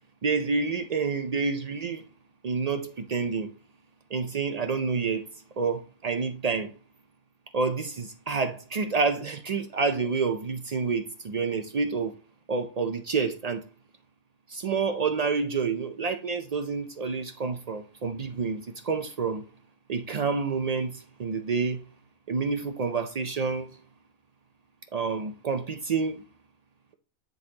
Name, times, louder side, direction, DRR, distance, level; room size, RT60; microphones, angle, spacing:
voice 1, 0.2-2.0 2.4-3.5 4.1-5.3 5.6-6.7 7.5-12.1 12.5-13.6 14.5-19.5 19.9-21.8 22.3-23.7 24.9-26.2, right 4 dB, 75° right, 0.3 m, -28 dB
10.0 x 4.0 x 2.8 m
omnidirectional pair, 1.4 m